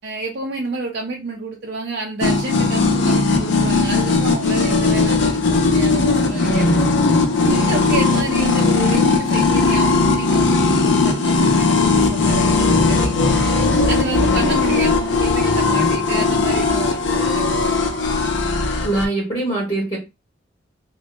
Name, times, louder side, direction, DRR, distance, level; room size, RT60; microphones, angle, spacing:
voice 1, 0.0-7.0 7.4-13.4 13.9-18.2, right 3 dB, 55° right, 0.5 m, -29 dB
sound 1, 2.2-19.0, left 3 dB, 70° left, 0.4 m, -18 dB
voice 2, 18.8-20.0, right 2 dB, 30° left, 1.0 m, -22 dB
2.1 x 2.1 x 2.9 m
head